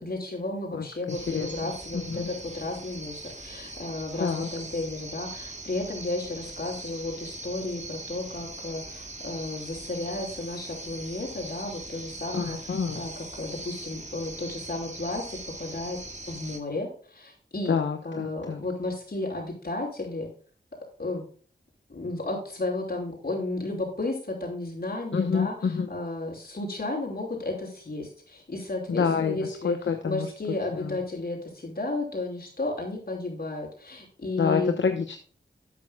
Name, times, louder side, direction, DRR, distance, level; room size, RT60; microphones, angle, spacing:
voice 1, 0.0-12.6 12.9-16.0 16.3-17.8 18.0-20.3 21.0-21.2 21.9-34.7, left 2 dB, 55° left, 0 dB, 5.2 m, -33 dB
voice 2, 0.7-1.7 2.1-2.3 4.2-4.5 12.3-13.0 17.7-18.6 25.1-25.9 28.9-30.3 30.8-31.0 34.4-35.2, left 6 dB, 80° left, 6 dB, 0.9 m, -28 dB
sound 1, 1.1-16.6, right 2 dB, 40° right, 2.1 m, -41 dB
12.5 x 8.6 x 2.3 m, 0.43 s
cardioid pair, 50°, 19 cm